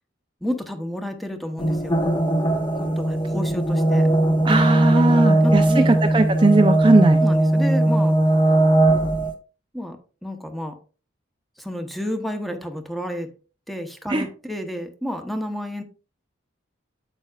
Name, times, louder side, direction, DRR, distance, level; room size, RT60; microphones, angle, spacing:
voice 1, 0.4-2.1 2.8-4.1 5.1-5.9 7.1-8.2 9.7-10.8 11.6-13.3 13.7-15.8, equal, ahead, 6 dB, 1.0 m, -31 dB
sound 1, 1.6-9.3, right 1 dB, 25° left, 1.0 m, -19 dB
voice 2, 4.4-7.2 14.1-14.3, right 2 dB, 25° right, 5 dB, 0.6 m, -18 dB
9.1 x 7.8 x 2.4 m, 0.35 s
head